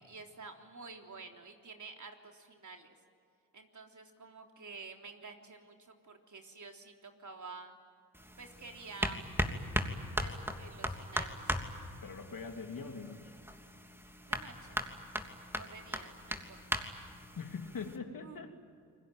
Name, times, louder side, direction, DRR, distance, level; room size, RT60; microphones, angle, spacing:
voice 1, 0.1-2.9 3.5-7.8 8.4-9.3 10.2-11.6 14.3-14.8 15.6-16.8 18.2-18.4, right 4 dB, 50° right, 3 dB, 3.6 m, -50 dB
sound 1, 8.1-18.0, equal, 5° right, 3.0 m, -38 dB
voice 2, 12.0-13.3 17.4-18.6, left 5 dB, 60° left, 4 dB, 3.2 m, -42 dB
29.0 x 21.0 x 9.2 m, 2.3 s
supercardioid pair, 50°, 38 cm